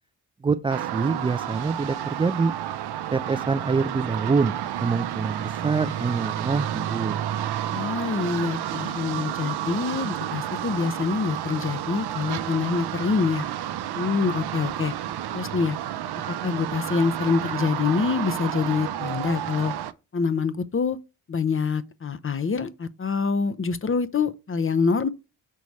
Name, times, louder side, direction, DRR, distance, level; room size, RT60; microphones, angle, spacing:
voice 1, 0.4-2.5 3.1-7.2, right 4 dB, 10° right, 0.3 m, -25 dB
sound 1, 0.7-19.9, right 11 dB, 50° right, 0.7 m, -31 dB
voice 2, 7.7-13.4 13.9-14.9 15.3-15.8 16.4-19.7 20.1-21.0 21.3-25.1, left 5 dB, 25° left, 0.8 m, -25 dB
6.5 x 4.0 x 4.6 m
hypercardioid pair, 45°, 50 cm